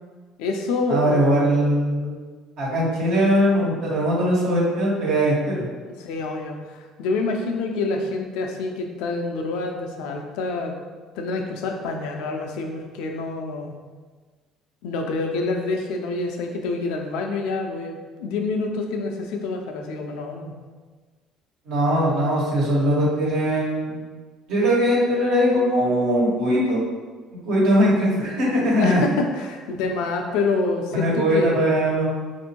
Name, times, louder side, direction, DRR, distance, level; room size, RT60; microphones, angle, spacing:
voice 1, 0.4-1.6 6.0-10.8 11.1-13.8 14.8-20.5 28.8-31.6, left 3 dB, 80° left, 3 dB, 0.5 m, -27 dB
voice 2, 0.9-2.2 2.6-5.7 21.6-24.0 24.5-26.8 27.4-29.0 30.9-32.1, equal, 70° right, -5 dB, 1.3 m, -20 dB
4.2 x 2.6 x 2.9 m, 1.4 s
supercardioid pair, 75°, 0 cm